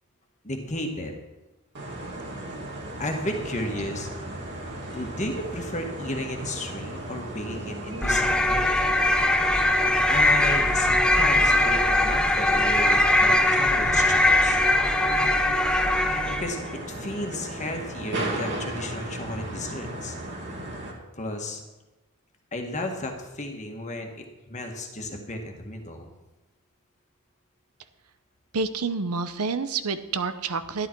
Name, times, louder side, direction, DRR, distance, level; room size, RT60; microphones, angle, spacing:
voice 1, 0.4-1.1 3.0-4.1 4.9-8.8 10.1-14.6 16.3-20.1 21.1-21.6 22.5-26.1, left 1 dB, 35° left, 3 dB, 1.6 m, -33 dB
sound 1, 1.7-20.9, right 1 dB, 55° right, 2.0 m, -35 dB
sound 2, 8.0-16.6, left 1 dB, 5° left, 0.7 m, -21 dB
voice 2, 28.5-30.9, right 4 dB, 85° right, 11 dB, 0.8 m, -28 dB
11.5 x 11.0 x 4.6 m, 1.1 s
head